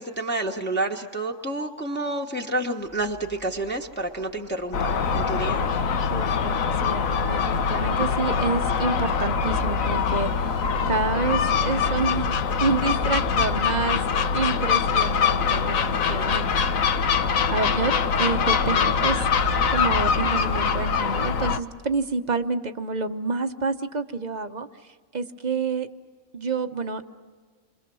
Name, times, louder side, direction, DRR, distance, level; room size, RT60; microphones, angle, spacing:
voice 1, 0.0-5.6, right 2 dB, 10° left, 1 dB, 1.1 m, -29 dB
sound 1, 2.8-20.7, right 1 dB, 10° right, 1.2 m, -39 dB
Gull seagull, 4.7-21.6, left 6 dB, 80° left, 1.3 m, -23 dB
voice 2, 6.1-12.3 12.6-14.0 14.3-16.6 17.2-24.7 25.1-25.9 26.3-27.0, right 4 dB, 35° right, 8 dB, 1.0 m, -28 dB
28.5 x 24.5 x 6.2 m, 1.5 s
omnidirectional pair, 1.4 m